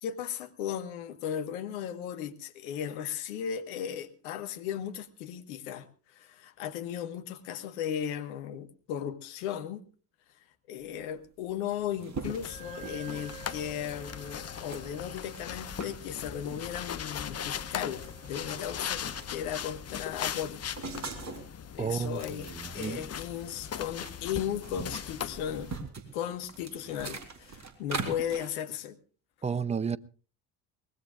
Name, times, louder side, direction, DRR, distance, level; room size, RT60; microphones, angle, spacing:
voice 1, 0.0-9.8 10.7-20.8 21.7-22.5 22.7-25.7 26.1-29.0, left 9 dB, 65° left, 1.5 m, -36 dB
sound 1, 11.2-11.3 11.5-13.5 14.0-14.2 14.7-15.9 16.5-16.7 17.3-17.4 17.7-19.6 19.9-21.5 21.9-24.1 24.4-28.5, right 4 dB, 35° right, 3.6 m, -42 dB
sound 2, 12.2-25.8, left 8 dB, 30° left, 1.1 m, -39 dB
Wind instrument woodwind instrument, 12.5-19.8, right 7 dB, 70° right, 5.3 m, -52 dB
voice 2, 21.8-23.1 29.4-30.0, right 6 dB, 15° right, 0.7 m, -32 dB
24.0 x 20.0 x 2.4 m
figure-of-eight pair, 50°, 46 cm